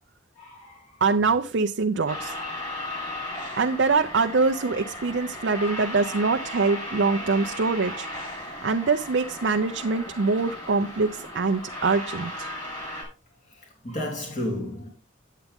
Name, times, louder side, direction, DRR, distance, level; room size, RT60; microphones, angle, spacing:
voice 1, 0.4-0.8 13.8-14.9, left 1 dB, 35° left, 3.0 m, -32 dB
voice 2, 1.0-2.4 3.6-8.1 8.4-12.5, right 4 dB, 65° right, 0.5 m, -24 dB
sound 1, 2.1-13.0, left 1 dB, 20° left, 5.0 m, -36 dB
9.2 x 8.2 x 3.5 m
head